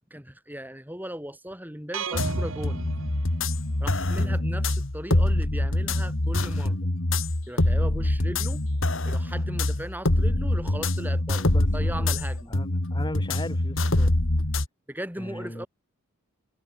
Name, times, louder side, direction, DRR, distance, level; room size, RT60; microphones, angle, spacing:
voice 1, 0.1-2.8 3.8-6.8 7.5-8.6 9.1-12.5 14.9-15.7, equal, 10° right, 7.8 m, -37 dB
sound 1, 1.9-3.9, right 4 dB, 65° right, 1.2 m, -33 dB
sound 2, 2.1-14.7, left 1 dB, 60° left, 2.0 m, -25 dB
voice 2, 11.5-12.1 12.5-14.1 15.2-15.7, left 1 dB, 20° left, 7.4 m, -37 dB
head